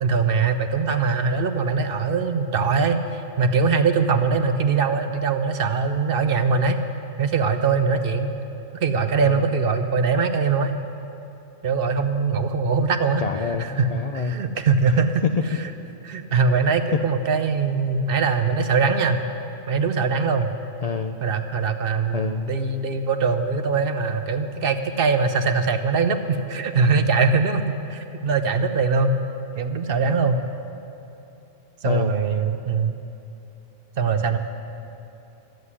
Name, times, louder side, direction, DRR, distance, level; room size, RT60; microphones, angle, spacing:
voice 1, 0.0-6.8 7.2-8.3 8.7-10.8 11.6-15.2 15.6-15.7 16.0-19.2 19.7-20.5 21.2-29.2 29.6-30.4 31.8-33.0 34.0-34.4, right 4 dB, 55° right, 8 dB, 0.8 m, -22 dB
voice 2, 13.2-14.4 20.8-21.2 22.1-22.5 31.8-32.2, left 5 dB, 65° left, 6 dB, 0.3 m, -28 dB
13.5 x 7.9 x 9.6 m, 2.8 s
omnidirectional pair, 1.3 m